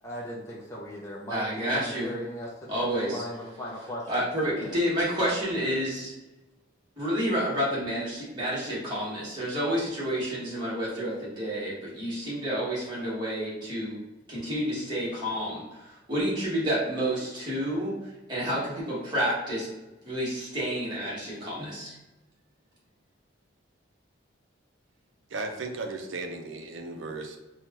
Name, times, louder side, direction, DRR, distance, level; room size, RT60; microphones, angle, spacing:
voice 1, 0.0-4.3 4.6-5.0, equal, 15° left, -5 dB, 0.5 m, -38 dB
voice 2, 1.3-2.1 2.7-3.2 4.1-6.1 7.0-14.0 14.3-19.7 20.0-21.9, equal, 25° right, -7 dB, 1.4 m, -29 dB
voice 3, 25.3-27.4, right 3 dB, 85° right, 3 dB, 0.6 m, -35 dB
4.4 x 2.3 x 2.9 m, 1.1 s
head